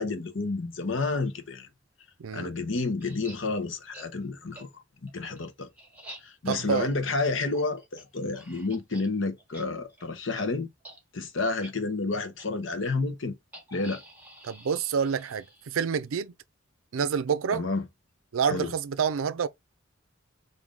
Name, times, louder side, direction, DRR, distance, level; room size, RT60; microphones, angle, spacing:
voice 1, 0.0-1.7 2.3-4.7 5.0-5.7 6.2-10.7 11.1-13.3 13.7-14.0 17.5-17.9 18.5-18.7, left 3 dB, 65° left, 0.9 m, -30 dB
voice 2, 2.2-2.5 6.5-6.9 14.4-16.3 16.9-17.6 18.3-19.5, right 6 dB, 90° right, 0.4 m, -28 dB
sound 1, 3.0-3.4 3.9-4.1 4.5-4.6 5.1-9.1 9.4-9.6 9.9-10.1 10.4-10.5 10.8-11.0 11.4-11.7 12.4-12.5 13.5-15.9, right 1 dB, 10° right, 1.1 m, -48 dB
3.7 x 2.7 x 3.5 m
head